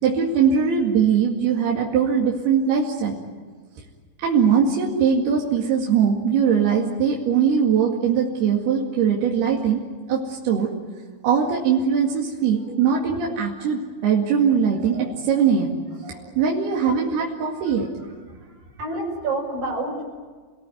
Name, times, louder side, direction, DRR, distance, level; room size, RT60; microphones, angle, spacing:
voice 1, 0.0-3.2 4.2-10.7 11.2-15.8 16.4-17.9, right 7 dB, 85° right, -1 dB, 4.2 m, -21 dB
voice 2, 16.0-16.4 17.5-17.9 18.4-20.1, right 2 dB, 65° right, 0 dB, 7.6 m, -30 dB
29.5 x 18.5 x 9.3 m, 1.5 s
omnidirectional pair, 4.4 m